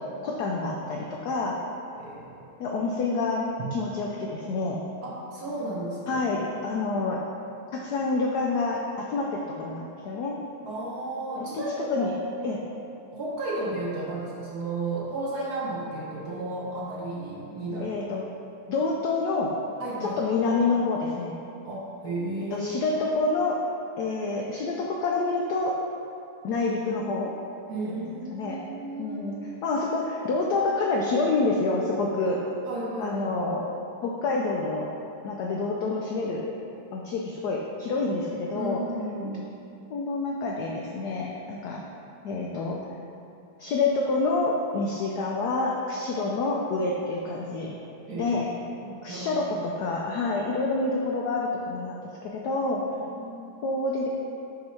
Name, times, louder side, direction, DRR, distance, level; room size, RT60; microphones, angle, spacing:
voice 1, 0.0-1.6 2.6-4.8 6.1-7.2 7.7-10.4 11.5-11.6 11.9-12.1 12.4-12.6 17.8-18.3 18.7-19.5 20.0-21.4 22.5-23.6 24.0-25.8 26.4-27.3 27.8-28.6 29.0-32.4 33.0-33.7 34.0-34.9 35.2-36.5 36.9-38.8 39.9-41.8 42.2-42.8 43.6-47.8 48.2-48.5 49.0-52.8 53.6-54.1, left 3 dB, 85° left, -1 dB, 0.8 m, -28 dB
voice 2, 2.0-2.5 5.0-6.3 10.7-12.1 13.1-18.0 19.8-20.2 21.6-22.7 27.7-29.5 32.7-33.4 38.5-39.5 48.1-48.4 48.7-49.6 53.0-53.6, right 2 dB, 60° right, -5 dB, 1.2 m, -34 dB
6.3 x 2.9 x 5.5 m, 2.7 s
omnidirectional pair, 2.3 m